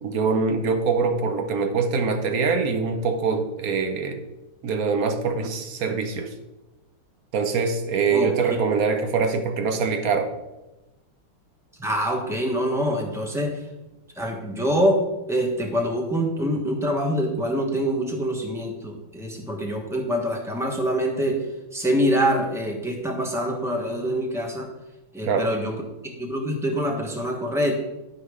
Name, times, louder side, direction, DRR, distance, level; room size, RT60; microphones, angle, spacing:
voice 1, 0.0-4.2 4.6-6.3 7.3-10.3 25.2-25.5, right 5 dB, 55° right, 6 dB, 1.0 m, -24 dB
voice 2, 8.1-8.6 11.8-13.5 14.2-15.0 15.3-21.4 21.7-24.7 25.1-25.7 26.0-27.8, equal, ahead, 1 dB, 0.6 m, -25 dB
11.5 x 4.8 x 4.9 m, 1.0 s
omnidirectional pair, 2.3 m